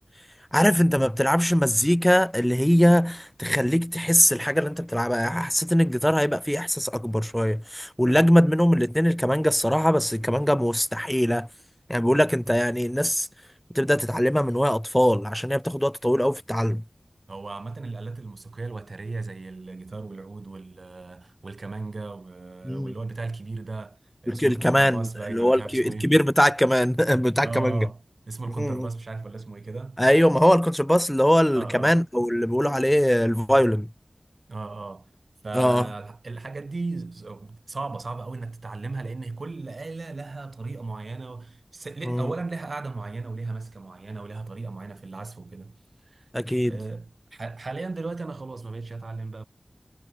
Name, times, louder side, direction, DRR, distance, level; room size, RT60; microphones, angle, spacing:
voice 1, 0.5-11.5 11.9-13.3 13.7-16.8 22.6-22.9 24.3-27.9 28.6-28.9 30.0-33.9 35.5-35.9 42.1-42.3 46.3-46.8, equal, 5° left, 0.6 m, -21 dB
voice 2, 17.3-26.1 27.4-28.0 28.3-30.0 31.5-32.1 34.5-35.1 35.4-45.8 46.1-46.2 46.6-49.4, right 3 dB, 70° right, 5.1 m, -35 dB
wide cardioid pair, 70°, 0 cm